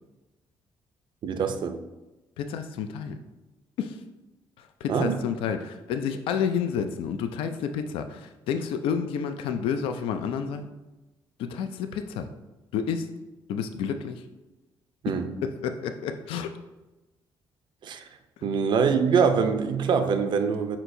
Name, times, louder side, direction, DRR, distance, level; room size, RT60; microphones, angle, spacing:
voice 1, 1.2-1.8 4.9-5.2 15.0-15.3 17.8-18.1 18.4-20.8, right 6 dB, 60° right, 8 dB, 0.5 m, -24 dB
voice 2, 2.4-3.2 3.8-4.0 4.6-10.7 11.4-12.3 12.7-13.1 13.5-14.2 15.1-15.2 15.4-16.5, left 7 dB, 85° left, 8 dB, 0.4 m, -30 dB
4.6 x 4.3 x 2.6 m, 1.1 s
cardioid pair, 95°, 9 cm